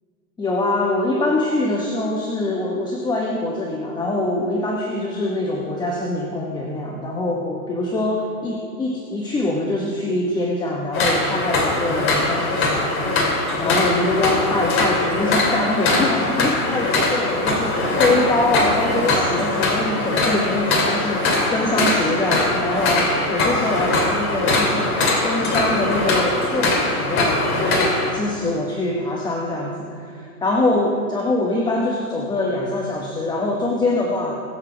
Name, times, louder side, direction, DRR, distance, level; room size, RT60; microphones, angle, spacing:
voice 1, 0.4-13.0 13.6-34.4, left 2 dB, 10° left, -1 dB, 0.9 m, -24 dB
sound 1, 10.9-28.1, left 2 dB, 25° left, 2.9 m, -21 dB
22.5 x 7.5 x 4.9 m, 2.4 s
hypercardioid pair, 130°, 47 cm